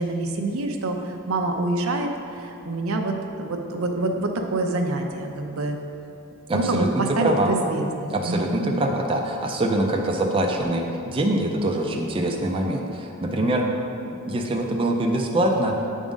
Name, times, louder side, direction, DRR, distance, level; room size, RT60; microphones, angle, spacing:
voice 1, 0.0-2.1 2.4-5.8 6.5-8.8, right 2 dB, 75° right, 3 dB, 0.6 m, -26 dB
voice 2, 6.5-6.9 7.2-7.5 8.1-13.7 14.1-15.8, right 1 dB, 25° right, 1 dB, 0.5 m, -24 dB
8.2 x 3.6 x 5.2 m, 2.7 s
head